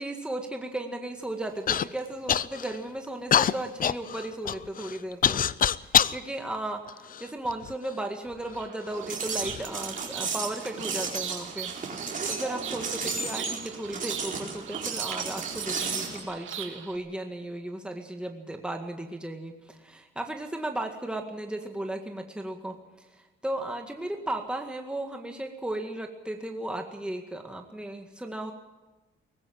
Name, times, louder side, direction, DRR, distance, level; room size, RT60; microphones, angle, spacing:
voice 1, 0.0-5.4 5.8-11.7 12.3-28.5, right 1 dB, 5° right, 3 dB, 2.0 m, -35 dB
Human voice / Cough, 1.7-1.9 2.3-2.8 3.3-6.2 6.9-7.7 8.5-8.6 9.3-9.6, left 9 dB, 45° left, 0.6 m, -25 dB
Bird vocalization bird call bird song, 8.5-17.0, right 9 dB, 80° right, 2.2 m, -41 dB
sound 1, 8.9-16.2, right 4 dB, 40° right, 4.5 m, -34 dB
19.5 x 15.0 x 9.1 m, 1.1 s
cardioid pair, 90°, 20 cm